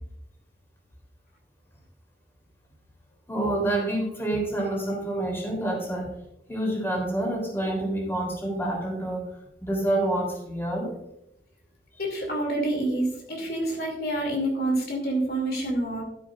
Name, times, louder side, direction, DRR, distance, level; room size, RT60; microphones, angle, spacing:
voice 1, 3.3-6.1 6.5-9.3 9.6-10.9, right 1 dB, 15° left, -1 dB, 3.3 m, -27 dB
voice 2, 12.0-16.0, right 1 dB, 60° left, 0 dB, 2.6 m, -27 dB
12.5 x 9.9 x 2.5 m, 0.83 s
head